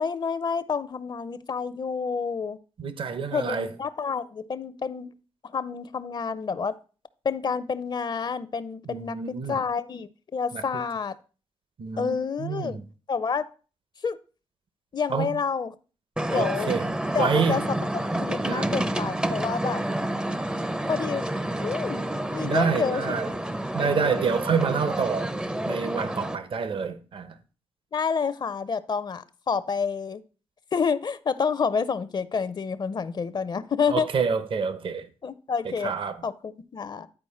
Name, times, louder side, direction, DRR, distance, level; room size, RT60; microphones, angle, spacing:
voice 1, 0.0-2.6 3.3-5.1 5.5-6.7 7.2-11.1 12.0-12.8 13.1-13.4 14.0-14.2 14.9-15.7 16.3-16.7 17.1-17.6 18.2-19.8 20.9-21.2 21.6-23.2 27.9-30.2 30.7-34.1 35.2-35.9 36.2-37.1, left 5 dB, 45° left, 0.5 m, -28 dB
voice 2, 2.8-3.7 8.9-9.6 10.5-10.6 11.8-12.8 15.1-15.4 16.3-16.9 17.1-17.7 18.4-18.7 22.4-23.4 23.7-25.3 25.7-27.3 33.9-35.1 35.6-36.2, right 5 dB, 55° right, 0.8 m, -27 dB
sound 1, 16.2-26.4, right 1 dB, 10° right, 0.5 m, -29 dB
9.9 x 4.4 x 4.2 m
cardioid pair, 75°, 10 cm